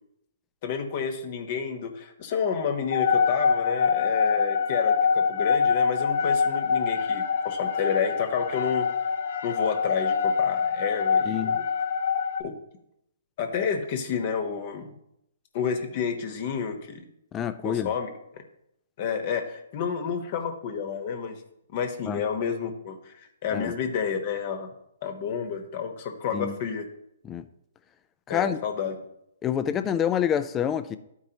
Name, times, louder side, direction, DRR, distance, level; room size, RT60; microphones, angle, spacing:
voice 1, 0.6-8.9 9.4-11.6 12.4-12.5 13.4-14.9 15.5-17.1 17.6-18.1 19.0-21.4 21.7-23.1 23.4-24.7 25.0-26.9 28.3-28.9, left 6 dB, 45° left, 5 dB, 1.1 m, -30 dB
sound 1, 2.9-12.4, left 6 dB, 60° left, 0.7 m, -25 dB
voice 2, 11.2-11.6 17.3-17.9 22.1-22.2 23.5-23.7 26.3-26.6 27.2-27.5 28.3-28.6 29.4-31.0, left 9 dB, 20° left, 11 dB, 0.5 m, -27 dB
11.5 x 4.6 x 2.9 m, 0.80 s
hypercardioid pair, 130°, 0 cm